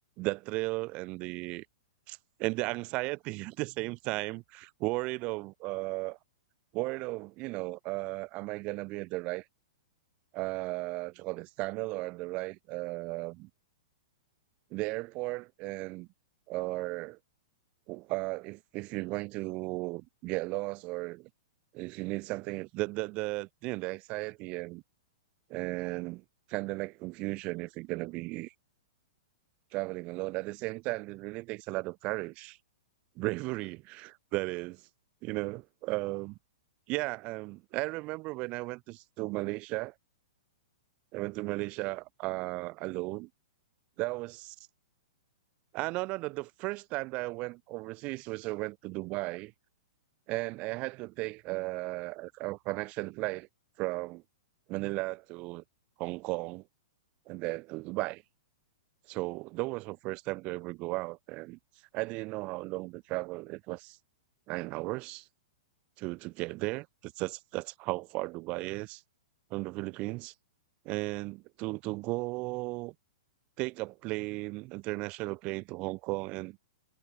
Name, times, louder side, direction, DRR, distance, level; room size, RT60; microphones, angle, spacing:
voice 1, 0.2-1.7 2.1-6.2 6.7-9.4 10.3-13.5 14.7-16.1 16.5-17.2 17.9-21.3 21.7-24.8 25.5-28.5 29.7-32.6 33.2-34.8 35.2-36.4 36.9-39.9 41.1-43.3 44.0-44.6 45.7-49.5 50.3-53.5 53.8-54.2 54.7-55.6 56.0-56.6 57.3-58.2 59.1-61.6 61.9-64.0 64.5-65.3 66.0-69.0 69.5-70.3 70.8-72.9 73.6-76.6, right 23 dB, 40° right, 0.5 m, -35 dB
hypercardioid pair, 120°, 3 cm